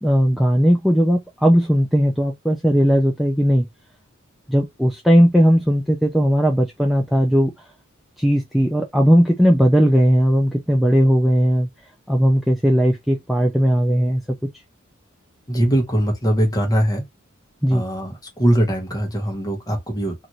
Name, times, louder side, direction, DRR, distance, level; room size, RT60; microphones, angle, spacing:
voice 1, 0.0-3.7 4.5-7.5 8.2-11.7 12.1-14.2 17.6-17.8, equal, ahead, 0.3 m, -17 dB
voice 2, 15.5-17.0 17.7-20.1, equal, 20° left, 1.0 m, -21 dB
2.6 x 2.5 x 2.9 m
head